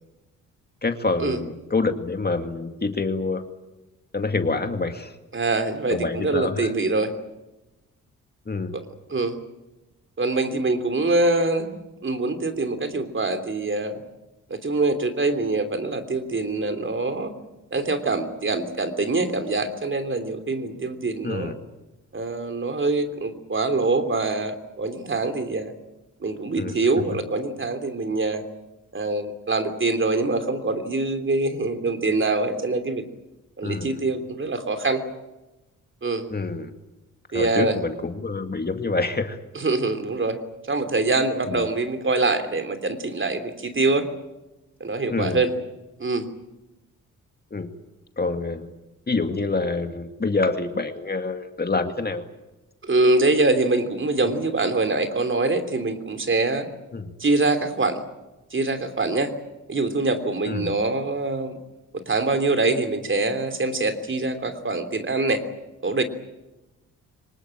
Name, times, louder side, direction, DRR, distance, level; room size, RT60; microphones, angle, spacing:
voice 1, 0.8-3.4 4.1-5.2 5.9-6.7 8.5-8.7 21.2-21.6 26.6-26.9 33.6-34.0 36.3-36.7 37.3-39.4 41.5-41.6 45.1-45.4 47.5-47.7 48.2-48.7 49.1-52.2 56.9-57.1 60.5-60.8, left 3 dB, 30° left, 6 dB, 2.3 m, -26 dB
voice 2, 5.3-7.1 9.1-9.4 10.2-14.0 14.5-17.3 17.7-21.5 22.1-25.7 26.2-28.4 28.9-33.0 33.6-35.0 36.0-36.3 37.3-37.8 39.5-40.4 40.7-44.1 44.8-45.5 46.0-46.3 52.8-56.7 57.2-58.0 58.5-59.3 59.7-61.6 61.9-65.4 65.8-66.0, right 3 dB, 35° right, 8 dB, 3.2 m, -24 dB
24.0 x 19.5 x 9.0 m, 1.0 s
supercardioid pair, 60°, 33 cm